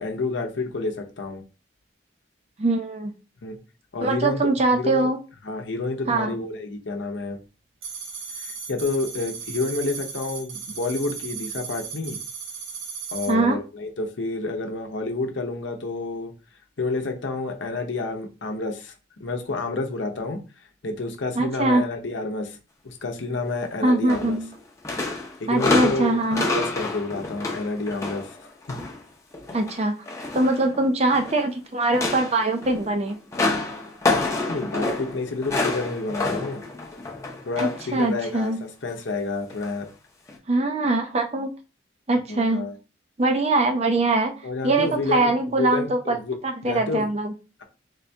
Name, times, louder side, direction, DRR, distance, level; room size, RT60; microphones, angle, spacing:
voice 1, 0.0-1.4 3.4-3.6 3.9-5.1 5.4-7.4 8.4-12.2 13.1-16.3 16.8-18.9 19.2-20.4 20.8-22.6 22.8-24.4 25.4-28.4 28.7-28.8 34.4-36.6 37.4-39.9 42.3-42.7 44.4-46.4 46.6-47.1, left 3 dB, 80° left, 4 dB, 0.7 m, -29 dB
voice 2, 2.6-3.1 4.0-5.2 6.1-6.4 13.3-13.6 21.4-21.9 23.8-24.5 25.5-26.5 29.5-30.0 30.3-33.2 37.6-38.6 40.5-41.5 42.1-42.7 43.2-44.3 44.6-46.2 46.4-47.3, right 2 dB, 35° right, 5 dB, 0.5 m, -22 dB
sound 1, 7.8-13.3, right 6 dB, 90° right, 0.8 m, -36 dB
sound 2, 24.1-24.6 24.8-29.0 29.3-31.4 31.8-37.9 38.2-38.5 39.5-39.7 40.3-40.4, left 3 dB, 15° left, 0.6 m, -28 dB
3.6 x 2.7 x 3.4 m, 0.32 s
head